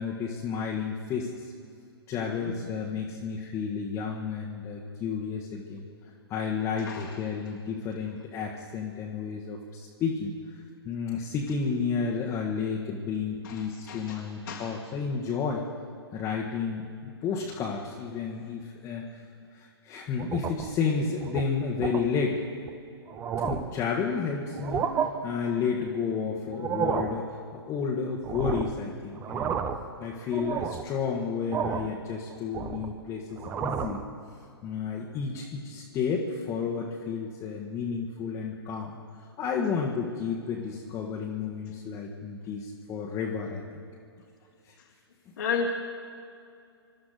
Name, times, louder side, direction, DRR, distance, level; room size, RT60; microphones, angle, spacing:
voice 1, 0.0-1.5 2.1-5.9 6.3-15.6 16.1-19.2 19.5-22.4 23.4-24.9 25.2-29.6 30.0-34.0 34.6-43.8, left 5 dB, 20° left, -3 dB, 1.4 m, -31 dB
voice 2, 2.2-2.7 6.8-7.2 13.4-14.7 45.4-45.7, left 6 dB, 55° left, -2 dB, 1.9 m, -34 dB
sound 1, 20.2-20.8 21.2-21.4 21.8-22.0 22.7-22.8 23.1-23.8 24.5-25.1 26.5-27.2 28.2-28.8 29.2-29.9 30.3-30.9 31.5-31.9 32.3-33.0 33.4-34.0, right 7 dB, 15° right, 0.7 m, -31 dB
26.0 x 13.0 x 4.0 m, 2.4 s
figure-of-eight pair, 120°, 14 cm